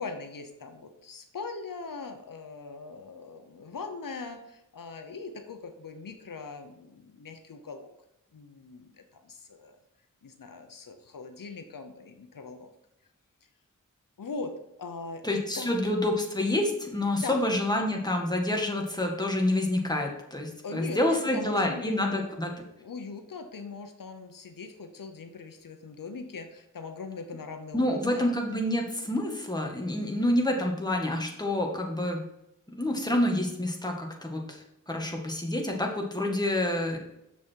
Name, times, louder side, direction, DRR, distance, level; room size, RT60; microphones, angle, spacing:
voice 1, 0.0-7.9 8.3-9.8 10.2-12.7 13.4-13.5 14.2-15.8 17.2-17.4 20.6-22.3 22.8-28.3, left 4 dB, 80° left, 6 dB, 0.9 m, -41 dB
voice 2, 15.2-22.5 27.7-32.3 32.8-37.0, left 1 dB, 10° left, 1 dB, 1.9 m, -28 dB
7.1 x 6.1 x 4.6 m, 0.85 s
wide cardioid pair, 55°, 33 cm